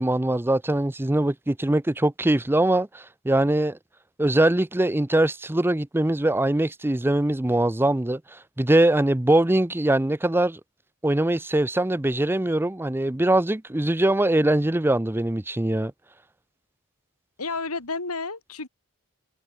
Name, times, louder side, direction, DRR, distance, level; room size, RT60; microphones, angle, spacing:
voice 1, 0.0-3.8 4.2-10.6 11.0-15.9, right 1 dB, 10° right, 0.6 m, -22 dB
voice 2, 17.4-18.7, left 3 dB, 90° left, 3.4 m, -31 dB
head